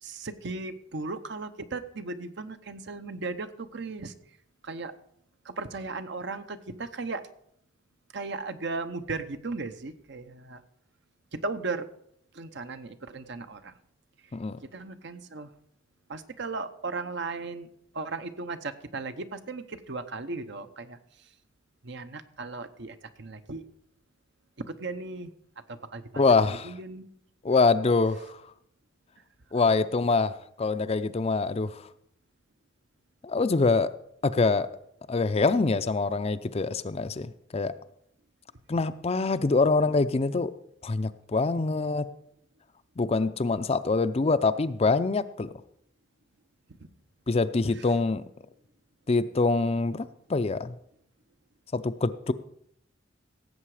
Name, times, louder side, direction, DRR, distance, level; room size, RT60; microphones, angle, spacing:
voice 1, 0.0-4.1 4.6-4.9 5.4-7.3 8.1-10.6 11.3-11.9 12.3-13.8 14.2-14.3 14.6-15.5 16.1-17.7 17.9-21.3 21.8-23.6 24.7-25.3 25.7-26.2 26.5-27.0 38.7-38.8 46.8-46.9 47.8-47.9, right 3 dB, 65° right, 9 dB, 0.9 m, -36 dB
voice 2, 26.2-26.7 27.4-28.4 29.5-30.3 30.6-31.8 33.2-33.9 34.2-34.7 35.1-37.7 38.7-40.5 40.8-42.1 43.0-45.5 47.3-48.2 49.1-50.7 51.7-52.3, left 3 dB, 30° left, 12 dB, 0.5 m, -25 dB
17.0 x 7.8 x 4.9 m, 0.70 s
head